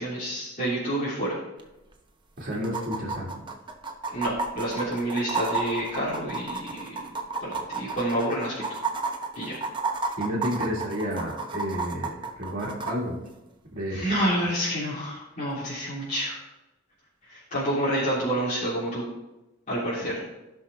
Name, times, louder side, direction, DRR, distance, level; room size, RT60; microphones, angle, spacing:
voice 1, 0.0-1.4 4.1-8.6 9.3-9.6 13.9-16.4 17.2-19.0 19.7-20.2, right 1 dB, 40° left, -10 dB, 3.2 m, -28 dB
sound 1, 1.6-1.7 1.9-2.0 2.6-12.9 14.6-14.7, right 3 dB, 25° right, 0.9 m, -31 dB
voice 2, 2.4-3.4 10.2-13.2 13.7-14.0, equal, 45° right, -6 dB, 2.0 m, -31 dB
16.0 x 5.7 x 3.5 m, 0.98 s
head